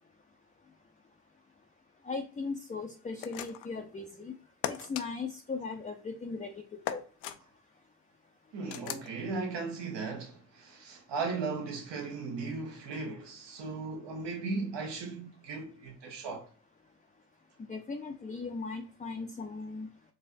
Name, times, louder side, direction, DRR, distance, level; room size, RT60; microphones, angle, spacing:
voice 1, 2.0-4.4 4.7-6.5 6.9-7.0 17.7-19.9, left 4 dB, 15° left, 0.5 m, -38 dB
sound 1, 3.2-3.8 4.6-5.1 6.8-7.4 8.7-9.1, left 12 dB, 75° left, 0.5 m, -37 dB
voice 2, 8.5-16.5, right 4 dB, 60° right, 1.2 m, -37 dB
4.5 x 2.5 x 2.6 m
hypercardioid pair, 40°, 47 cm